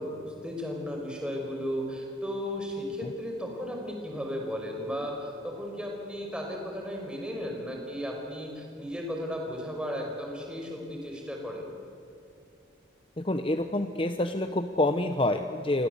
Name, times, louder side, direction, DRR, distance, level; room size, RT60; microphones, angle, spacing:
voice 1, 0.0-11.7, equal, 5° right, 0 dB, 5.7 m, -35 dB
voice 2, 13.2-15.9, left 1 dB, 30° left, 8 dB, 0.9 m, -27 dB
29.0 x 24.0 x 8.3 m, 2.6 s
head